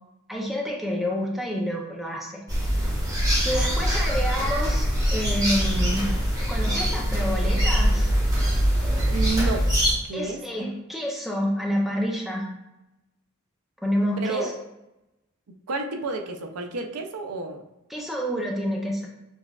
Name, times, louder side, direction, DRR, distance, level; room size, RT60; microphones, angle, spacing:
voice 1, 0.3-2.4 3.4-6.1 6.5-8.1 10.1-12.5 13.8-14.5 17.9-19.1, equal, ahead, -1 dB, 0.5 m, -28 dB
sound 1, 2.5-9.9, equal, 15° right, 0.9 m, -23 dB
voice 2, 3.4-3.9 9.1-9.7 10.0-10.4 14.2-14.5 15.7-17.6, right 3 dB, 85° right, 4 dB, 0.5 m, -30 dB
6.1 x 2.3 x 2.3 m, 0.93 s
head